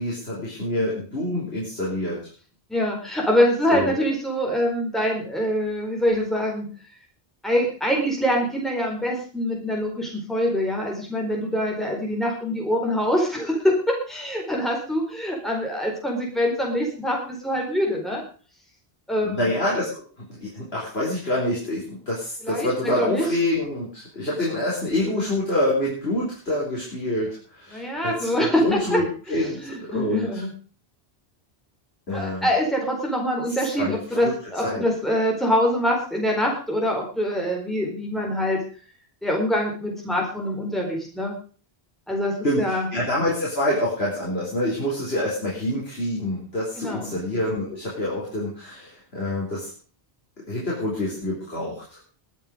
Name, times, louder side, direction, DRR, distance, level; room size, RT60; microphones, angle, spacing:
voice 1, 0.0-2.2 3.7-4.0 19.2-30.4 32.1-32.5 33.5-34.3 34.6-34.9 42.4-49.7 50.5-52.0, left 1 dB, 80° left, -5 dB, 4.7 m, -27 dB
voice 2, 2.7-6.7 7.4-18.2 19.1-19.5 22.4-23.3 25.0-25.3 27.7-29.0 29.3-29.4 29.6-30.5 32.1-38.6 39.2-41.4 42.1-42.9 46.7-47.2, equal, ahead, -1 dB, 4.4 m, -24 dB
22.0 x 7.9 x 5.2 m, 0.39 s
omnidirectional pair, 1.0 m